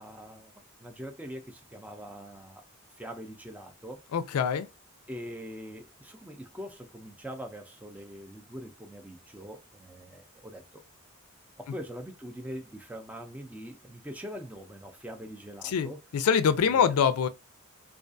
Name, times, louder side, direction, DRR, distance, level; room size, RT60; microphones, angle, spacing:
voice 1, 0.0-2.6 3.0-4.0 5.1-10.8 11.6-16.0 16.6-17.0, equal, 5° right, 0.4 m, -43 dB
voice 2, 4.1-4.7 15.6-15.9 16.1-17.3, left 7 dB, 85° left, 0.4 m, -24 dB
2.4 x 2.3 x 2.5 m
head